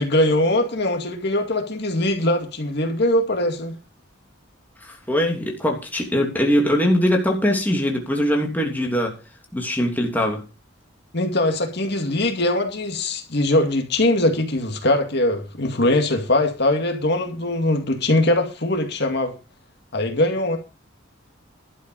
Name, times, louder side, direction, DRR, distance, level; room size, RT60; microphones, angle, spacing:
voice 1, 0.0-3.7 11.1-19.3 19.9-20.6, left 1 dB, 60° left, 2.1 m, -21 dB
voice 2, 4.8-9.1 9.5-10.4, equal, 10° left, 3.0 m, -21 dB
12.0 x 8.2 x 5.3 m
head